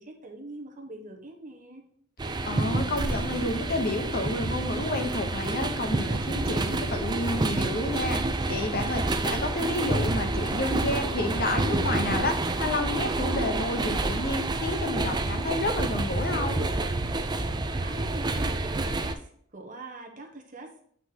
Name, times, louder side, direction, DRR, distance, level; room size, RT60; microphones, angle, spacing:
voice 1, 0.0-1.8 17.8-20.8, right 2 dB, 35° right, 1 dB, 1.3 m, -43 dB
sound 1, 2.2-19.1, right 2 dB, 20° right, 0.4 m, -28 dB
voice 2, 2.4-16.7, left 2 dB, 45° left, 6 dB, 0.9 m, -30 dB
7.9 x 5.6 x 2.9 m, 0.63 s
head